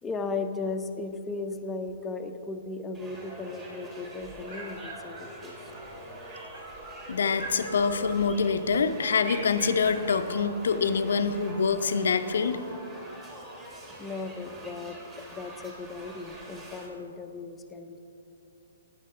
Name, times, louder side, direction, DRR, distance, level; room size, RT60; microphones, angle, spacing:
voice 1, 0.0-5.7 14.0-18.0, left 3 dB, 15° left, 6 dB, 0.6 m, -36 dB
sound 1, 2.9-16.9, right 1 dB, 20° right, 2.2 m, -45 dB
sound 2, 4.2-5.9 6.2-7.0 7.3-8.6 9.2-10.3, right 2 dB, 60° right, 2.3 m, -42 dB
voice 2, 7.1-12.6, left 5 dB, 70° left, 9 dB, 0.6 m, -25 dB
10.5 x 9.7 x 3.7 m, 2.7 s
hypercardioid pair, 130°, 0 cm